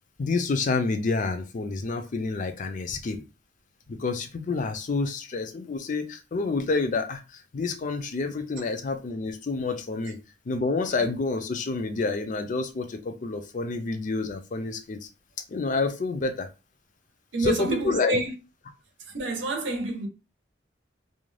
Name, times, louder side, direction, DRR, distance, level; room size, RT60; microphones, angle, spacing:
voice 1, 0.2-3.2 3.9-10.2 10.5-15.1 15.5-16.5 17.4-18.2, left 3 dB, 40° left, 0.4 m, -28 dB
voice 2, 17.3-18.3 19.1-20.1, right 2 dB, 75° right, 0.8 m, -28 dB
2.5 x 2.2 x 3.1 m
head